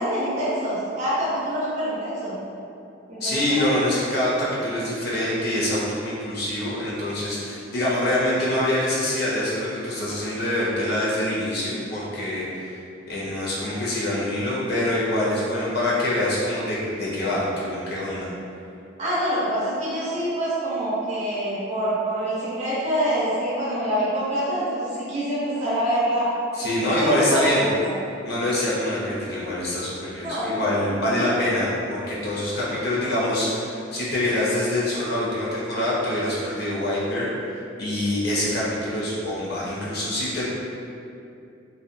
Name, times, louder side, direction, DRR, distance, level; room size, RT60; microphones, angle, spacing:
voice 1, 0.0-2.4 3.1-3.8 19.0-26.3 26.8-27.9 30.2-30.6 31.2-31.4, equal, 35° right, -10 dB, 0.6 m, -26 dB
voice 2, 3.2-12.8 13.1-18.3 26.5-27.7 28.2-37.3 37.8-40.4, left 1 dB, 55° left, -6 dB, 0.5 m, -25 dB
2.6 x 2.2 x 2.5 m, 2.6 s
head